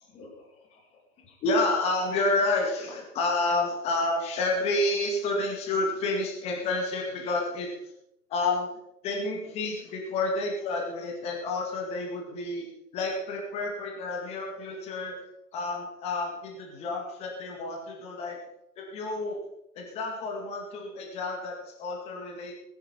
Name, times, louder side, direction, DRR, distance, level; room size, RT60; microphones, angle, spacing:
voice 1, 1.4-7.7 8.3-8.7 9.0-12.7 12.9-15.2 15.5-18.4 18.8-19.4 19.8-22.5, left 2 dB, 15° left, 1 dB, 2.2 m, -29 dB
19.5 x 11.0 x 4.5 m, 0.81 s
figure-of-eight pair, 140°, 47 cm